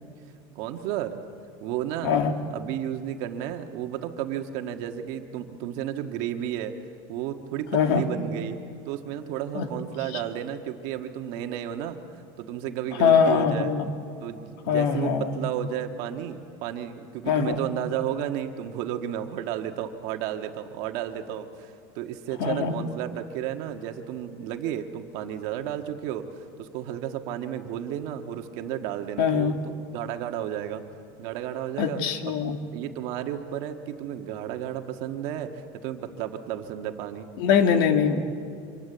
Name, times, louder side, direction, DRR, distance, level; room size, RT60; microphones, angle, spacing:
voice 1, 0.5-1.2 1.6-2.2 2.5-6.7 7.1-8.6 8.9-13.7 14.2-26.3 26.6-30.8 31.2-32.0 32.3-32.4 32.7-35.5 35.8-37.3, right 10 dB, 55° right, 5 dB, 1.7 m, -33 dB
voice 2, 7.7-8.1 9.5-9.7 10.1-10.2 13.0-13.9 14.7-15.4 17.3-17.6 22.4-22.7 29.2-29.6 31.8-32.6 37.4-38.2, left 7 dB, 70° left, 6 dB, 2.3 m, -22 dB
27.5 x 25.5 x 8.0 m, 2.4 s
cardioid pair, 175°, 12 cm